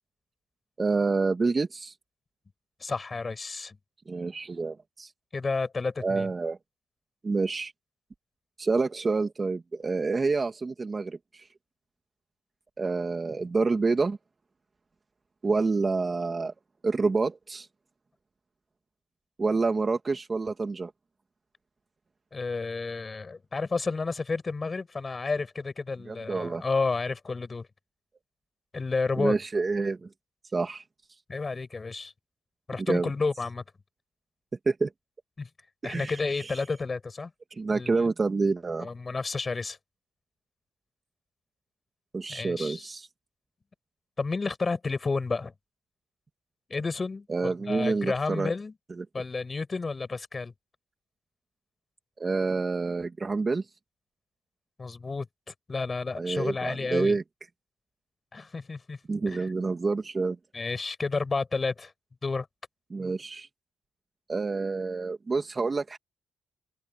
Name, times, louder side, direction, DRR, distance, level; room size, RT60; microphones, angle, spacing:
voice 1, 0.8-1.9 4.1-5.1 6.0-6.6 7.2-7.7 8.6-11.5 12.8-14.2 15.4-16.5 16.8-17.7 19.4-20.9 26.1-26.6 29.2-30.1 30.5-30.8 32.9-33.1 34.7-34.9 35.8-36.5 37.5-38.9 42.1-43.1 47.3-48.5 49.0-49.1 52.2-53.6 56.1-57.2 59.1-60.4 62.9-63.5 64.3-66.0, right 4 dB, 30° right, 2.7 m, -28 dB
voice 2, 2.8-3.8 5.3-6.3 22.3-27.7 28.7-29.4 31.3-32.1 32.7-33.6 35.4-35.5 35.8-37.3 37.7-38.0 38.8-39.8 42.3-42.9 44.2-45.5 46.7-48.7 49.1-50.5 54.8-57.2 58.3-59.0 59.3-59.5 60.5-61.9 62.2-62.5, left 4 dB, 30° left, 7.0 m, -31 dB
open air
cardioid pair, 90°, 0 cm